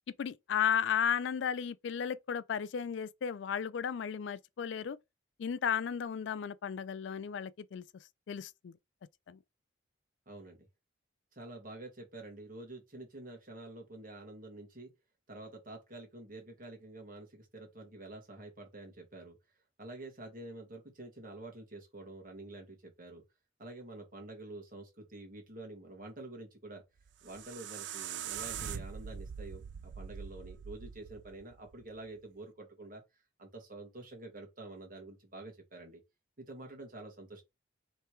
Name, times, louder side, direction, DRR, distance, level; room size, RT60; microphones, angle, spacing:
voice 1, 0.2-5.0 5.4-7.8 8.3-8.7 9.3-9.4, left 8 dB, 65° left, 0.3 m, -34 dB
voice 2, 10.3-10.6 11.3-14.9 15.3-19.4 19.8-23.2 23.6-26.8 27.2-33.0 33.4-36.0 36.4-37.4, right 2 dB, 45° right, 1.7 m, -48 dB
sound 1, 27.0-32.1, right 8 dB, 65° right, 0.4 m, -43 dB
3.3 x 3.3 x 4.4 m
head